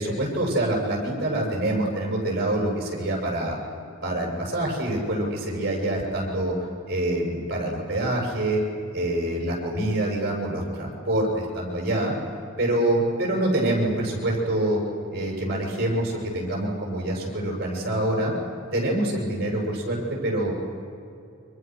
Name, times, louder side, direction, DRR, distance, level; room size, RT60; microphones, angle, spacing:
voice 1, 0.0-3.6 4.0-6.5 6.9-8.6 8.9-12.1 12.6-14.8 15.1-18.3 18.7-20.8, right 1 dB, 50° right, -1 dB, 8.0 m, -26 dB
30.0 x 25.5 x 6.5 m, 2.6 s
head